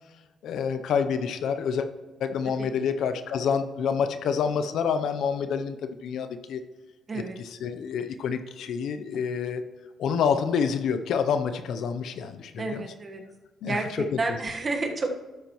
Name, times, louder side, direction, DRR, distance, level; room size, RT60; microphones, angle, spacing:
voice 1, 0.4-1.9 2.2-6.6 7.1-9.6 10.0-12.8 13.6-14.2, left 6 dB, 75° left, 9 dB, 0.6 m, -28 dB
voice 2, 12.6-13.2 13.6-15.1, right 3 dB, 35° right, 3 dB, 1.3 m, -30 dB
12.0 x 9.1 x 3.0 m, 1.2 s
cardioid pair, 90°, 0 cm